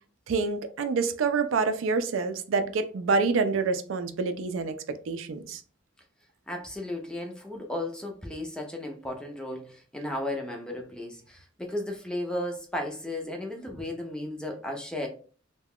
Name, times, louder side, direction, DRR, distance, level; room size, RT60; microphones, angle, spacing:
voice 1, 0.3-5.6, right 4 dB, 80° right, 9 dB, 0.4 m, -27 dB
voice 2, 6.5-15.1, left 1 dB, 5° left, 2 dB, 0.4 m, -34 dB
2.3 x 2.2 x 3.4 m, 0.40 s
head